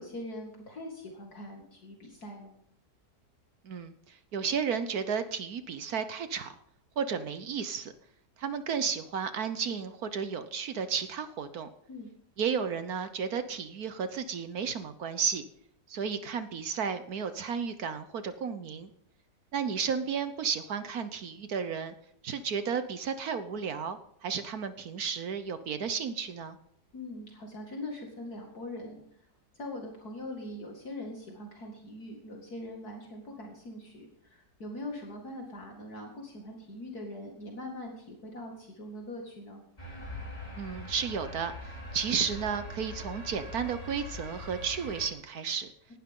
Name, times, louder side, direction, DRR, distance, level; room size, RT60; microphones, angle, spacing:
voice 1, 0.0-2.5 11.9-12.1 26.9-29.0 29.5-39.6, left 1 dB, 60° left, 0 dB, 2.7 m, -42 dB
voice 2, 3.6-6.5 7.0-7.9 8.4-11.7 12.4-15.4 15.9-18.9 19.5-21.9 22.2-26.6 40.5-45.7, right 6 dB, 60° right, 10 dB, 1.3 m, -33 dB
sound 1, 39.8-45.1, left 1 dB, 20° left, 4.3 m, -42 dB
19.0 x 12.0 x 3.8 m, 0.69 s
omnidirectional pair, 1.9 m